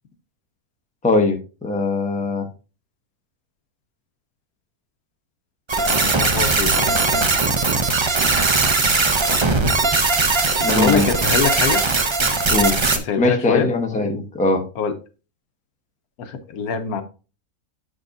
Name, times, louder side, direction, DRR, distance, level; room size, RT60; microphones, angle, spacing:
voice 1, 1.0-2.4 10.6-11.1 12.5-12.7 13.2-14.6, left 2 dB, 5° left, 4 dB, 0.7 m, -20 dB
sound 1, 5.7-13.0, right 3 dB, 45° right, 0.3 m, -19 dB
voice 2, 5.8-6.9 10.7-11.8 12.9-13.7 14.8-14.9 16.2-17.0, left 6 dB, 80° left, 9 dB, 1.3 m, -23 dB
7.2 x 6.3 x 2.6 m, 0.33 s
omnidirectional pair, 1.6 m